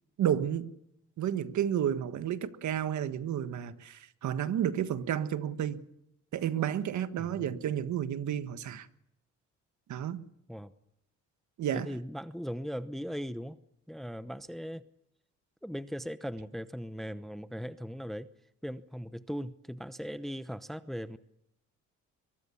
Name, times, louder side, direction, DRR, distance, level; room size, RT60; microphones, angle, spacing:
voice 1, 0.2-0.7 1.2-5.8 6.3-8.9 9.9-10.2 11.6-11.9, right 10 dB, 70° right, 1.5 m, -31 dB
voice 2, 7.2-7.5 10.5-10.7 11.7-13.6 13.9-14.8 15.6-18.3 18.6-21.2, equal, ahead, 0.9 m, -39 dB
22.5 x 22.5 x 7.1 m
cardioid pair, 90°, 30 cm